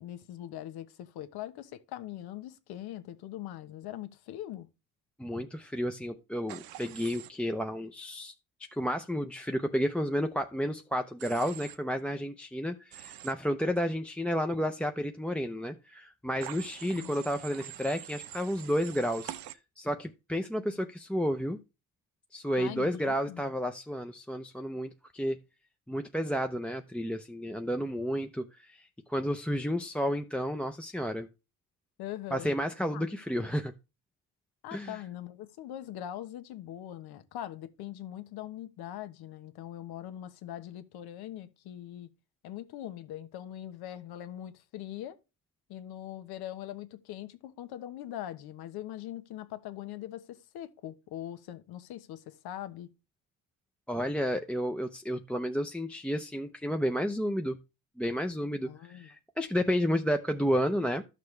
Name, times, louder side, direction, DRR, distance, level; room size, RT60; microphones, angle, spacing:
voice 1, 0.0-4.7 16.8-17.1 22.6-23.4 32.0-32.5 32.9-33.0 34.6-42.1 42.4-45.2 45.7-52.9 58.6-59.1, left 12 dB, 90° left, 1.2 m, -42 dB
voice 2, 5.2-8.3 8.7-19.3 19.8-21.6 22.3-25.4 25.9-31.3 32.3-33.7 34.7-35.0 53.9-57.6 58.0-61.0, equal, 5° left, 0.6 m, -31 dB
Human voice / Train, 6.5-7.3 11.2-11.8 12.9-13.3 16.4-19.5, right 12 dB, 75° right, 0.9 m, -45 dB
13.0 x 6.7 x 3.2 m
cardioid pair, 125°, 37 cm